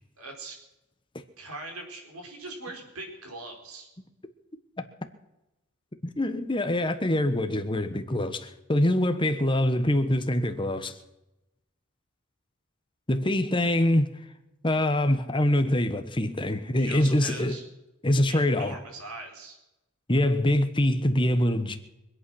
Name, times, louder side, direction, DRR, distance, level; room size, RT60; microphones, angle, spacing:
voice 1, 0.2-0.6 1.4-3.9 16.8-17.6 18.3-19.6, right 2 dB, 80° right, 4.4 m, -41 dB
voice 2, 6.0-10.9 13.1-14.1 14.6-17.5 18.0-18.7 20.1-21.8, left 1 dB, 20° left, 1.2 m, -24 dB
24.5 x 8.7 x 6.4 m
head